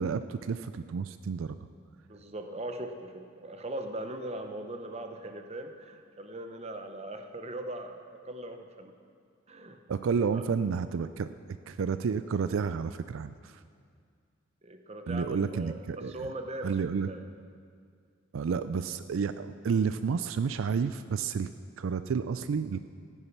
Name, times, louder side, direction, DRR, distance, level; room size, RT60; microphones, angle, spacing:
voice 1, 0.0-1.6 9.9-11.3 11.7-13.6 15.1-16.3 16.6-17.1 18.3-21.5 21.8-22.8, right 6 dB, 80° right, 12 dB, 0.4 m, -30 dB
voice 2, 2.1-8.9 9.5-9.8 10.3-10.5 14.6-16.8 17.1-17.3, right 1 dB, 30° right, 6 dB, 0.8 m, -40 dB
15.0 x 10.0 x 6.0 m, 2.2 s
head